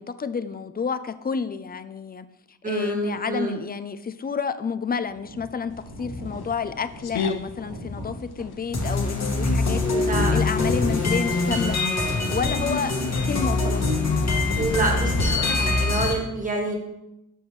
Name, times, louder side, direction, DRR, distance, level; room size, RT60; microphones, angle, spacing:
voice 1, 0.0-2.3 2.7-5.7 6.0-11.8 12.3-13.0 13.2-14.0, left 6 dB, 25° left, 12 dB, 0.4 m, -30 dB
voice 2, 2.6-3.5 9.8-10.5 14.6-16.7, right 2 dB, 20° right, 1 dB, 1.5 m, -27 dB
sound 1, 5.0-12.2, right 1 dB, 80° right, 1.6 m, -41 dB
sound 2, 5.7-15.3, left 4 dB, 85° left, 0.7 m, -37 dB
sound 3, 8.7-16.1, left 3 dB, 45° left, 1.3 m, -23 dB
6.9 x 5.4 x 3.1 m, 0.90 s
cardioid pair, 75°, 37 cm